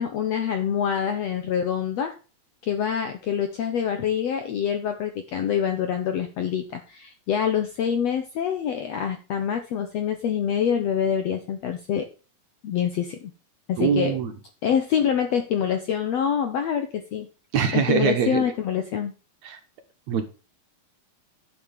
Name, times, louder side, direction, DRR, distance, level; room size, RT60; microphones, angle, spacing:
voice 1, 0.0-2.2 2.6-12.1 12.6-13.2 13.7-14.2 14.6-17.3 17.7-19.1, left 8 dB, 70° left, 6 dB, 1.6 m, -25 dB
voice 2, 13.8-14.3 17.5-18.5 19.4-19.6 20.1-20.2, right 7 dB, 65° right, 6 dB, 2.0 m, -23 dB
10.5 x 7.1 x 5.1 m, 0.34 s
omnidirectional pair, 4.0 m